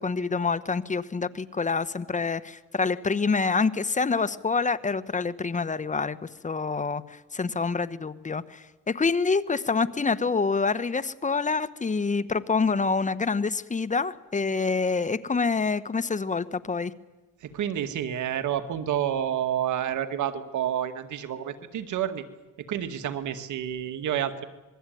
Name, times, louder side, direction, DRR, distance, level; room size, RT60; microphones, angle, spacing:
voice 1, 0.0-16.9, left 4 dB, 25° left, 14 dB, 1.3 m, -27 dB
voice 2, 17.4-22.2 22.7-24.4, right 10 dB, 75° right, 8 dB, 2.2 m, -29 dB
26.5 x 21.0 x 9.4 m, 1.1 s
cardioid pair, 90°, 30 cm